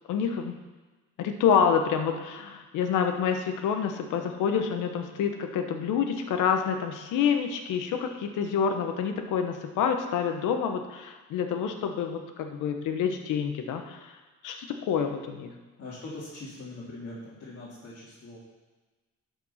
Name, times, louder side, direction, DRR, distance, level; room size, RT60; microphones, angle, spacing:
voice 1, 0.1-0.5 1.2-14.1 14.4-15.5, left 7 dB, 90° left, 6 dB, 1.1 m, -27 dB
voice 2, 15.8-18.4, left 2 dB, 50° left, -8 dB, 2.6 m, -42 dB
12.0 x 5.3 x 5.7 m, 1.2 s
cardioid pair, 90°, 30 cm